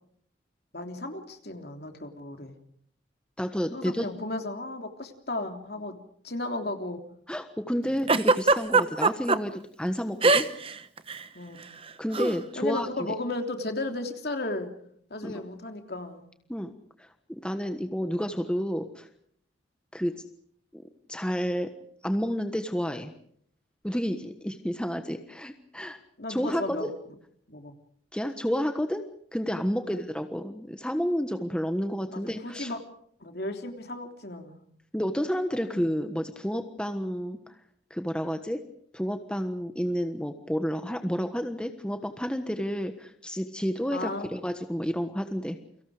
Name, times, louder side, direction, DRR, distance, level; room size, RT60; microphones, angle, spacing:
voice 1, 0.7-2.6 3.7-6.0 6.2-7.0 11.3-11.7 12.6-14.7 15.1-16.2 26.2-26.9 27.5-27.8 29.8-30.0 32.1-32.8 33.2-34.6 35.7-35.8 43.9-44.3, left 2 dB, 55° left, 5 dB, 3.3 m, -34 dB
voice 2, 3.4-4.1 7.3-10.5 12.0-12.9 15.2-15.4 16.5-16.7 17.0-19.1 19.9-20.2 20.7-20.8 21.1-21.7 22.0-23.1 23.8-26.0 26.3-26.8 28.1-29.0 29.3-32.7 34.9-37.6 37.9-38.6 38.9-45.6, equal, 5° left, 7 dB, 1.4 m, -30 dB
Giggle, 8.1-9.4 10.2-10.7 11.0-11.2 12.1-12.4, right 3 dB, 30° right, 1.1 m, -21 dB
30.0 x 24.5 x 5.0 m, 0.65 s
head